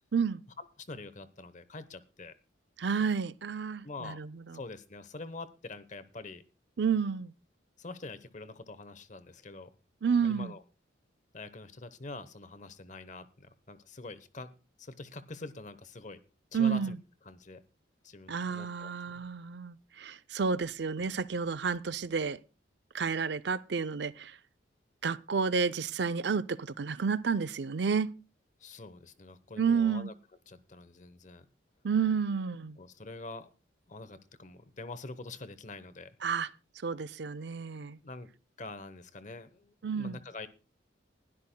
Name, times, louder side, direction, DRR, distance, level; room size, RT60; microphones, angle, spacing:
voice 1, 0.6-2.3 3.8-4.2 4.5-6.4 7.8-9.7 10.2-10.6 11.3-16.2 16.5-16.9 17.2-17.6 18.0-19.2 28.6-30.1 30.5-31.5 32.8-33.5 33.9-36.2 38.0-38.3 38.6-40.5, left 3 dB, 40° left, 0.9 m, -45 dB
voice 2, 2.8-4.6 6.8-7.3 10.0-10.5 16.5-16.9 18.3-22.4 22.9-24.3 25.0-28.1 29.6-30.1 31.8-32.8 36.2-36.5 36.8-38.0 39.8-40.2, right 6 dB, 60° right, 0.5 m, -30 dB
20.5 x 12.5 x 2.2 m
head